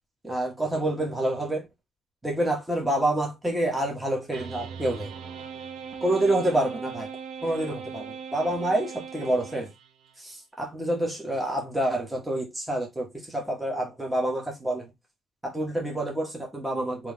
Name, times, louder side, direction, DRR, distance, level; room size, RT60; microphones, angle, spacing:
voice 1, 0.2-1.7 2.2-5.1 6.0-7.1 7.4-9.7 10.2-14.9 15.4-17.1, right 1 dB, 10° right, 1.5 m, -27 dB
sound 1, 4.3-10.1, right 6 dB, 85° right, 0.8 m, -39 dB
3.6 x 3.1 x 3.5 m
cardioid pair, 90°, 0 cm